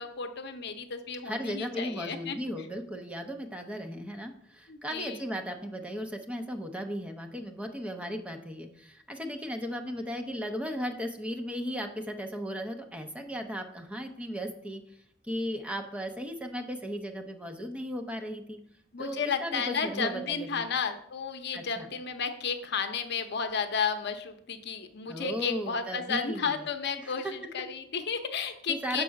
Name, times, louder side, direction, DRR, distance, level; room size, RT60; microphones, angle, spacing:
voice 1, 0.0-2.4 4.7-5.2 18.9-29.0, left 6 dB, 60° left, 7 dB, 0.7 m, -33 dB
voice 2, 1.2-14.8 15.2-18.6 19.0-20.6 21.5-21.9 25.1-26.6 27.0-27.4 28.7-29.0, equal, 5° right, 5 dB, 0.7 m, -36 dB
6.7 x 4.7 x 6.4 m, 0.71 s
head